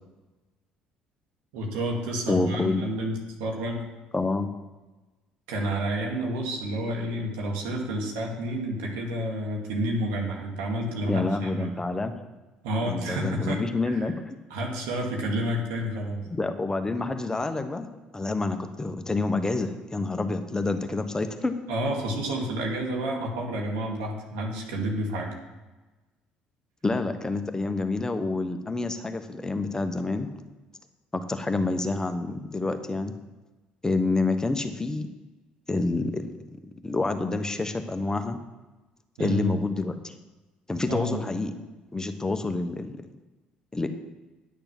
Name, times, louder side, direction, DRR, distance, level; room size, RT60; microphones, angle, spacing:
voice 1, 1.5-3.8 5.5-11.7 12.6-13.6 13.8-14.1 14.5-16.2 21.7-25.3 39.2-39.6 40.9-41.2, right 1 dB, 80° right, 0 dB, 2.1 m, -29 dB
voice 2, 2.3-2.8 4.1-4.5 11.1-12.2 12.8-14.4 16.3-17.9 18.1-21.6 26.8-30.3 31.1-33.1 33.8-35.1 35.7-36.3 36.8-38.4 39.2-40.1 40.7-41.5 41.9-43.0 43.7-43.9, left 3 dB, 20° left, 8 dB, 1.1 m, -28 dB
10.5 x 6.8 x 6.1 m, 1.1 s
hypercardioid pair, 60°, 3 cm